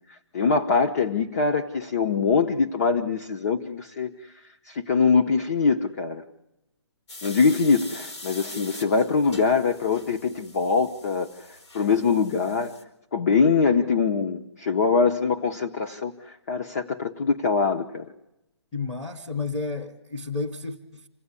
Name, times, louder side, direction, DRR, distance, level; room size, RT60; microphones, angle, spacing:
voice 1, 0.1-4.3 4.7-6.2 7.2-12.8 13.1-18.0, left 5 dB, 35° left, 6 dB, 0.9 m, -23 dB
sound 1, 7.1-12.8, left 2 dB, 70° left, 4.7 m, -43 dB
voice 2, 18.7-21.1, left 3 dB, 10° left, 2 dB, 0.9 m, -31 dB
28.0 x 17.0 x 9.7 m, 0.93 s
hypercardioid pair, 175°, 15 cm